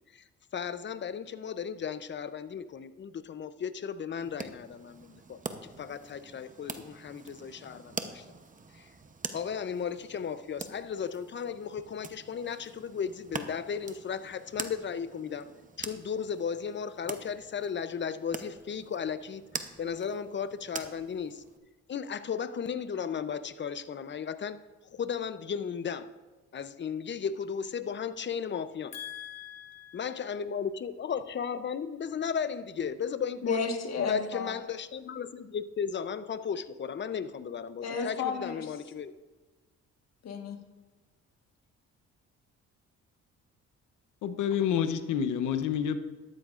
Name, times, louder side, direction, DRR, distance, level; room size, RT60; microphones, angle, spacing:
voice 1, 0.5-8.2 8.7-8.9 9.3-15.5 15.8-19.4 19.8-21.4 21.9-24.6 24.9-26.1 26.5-28.9 29.9-33.7 34.1-39.1, left 7 dB, 40° left, 12 dB, 0.7 m, -35 dB
sound 1, 4.2-21.6, right 4 dB, 25° right, 0.8 m, -44 dB
voice 2, 28.9-30.0 33.4-34.6 37.8-38.7 40.2-40.6, left 5 dB, 60° left, 4 dB, 1.5 m, -33 dB
voice 3, 44.2-46.0, left 8 dB, 85° left, 10 dB, 0.9 m, -28 dB
13.0 x 12.5 x 2.5 m, 1.2 s
cardioid pair, 90°, 30 cm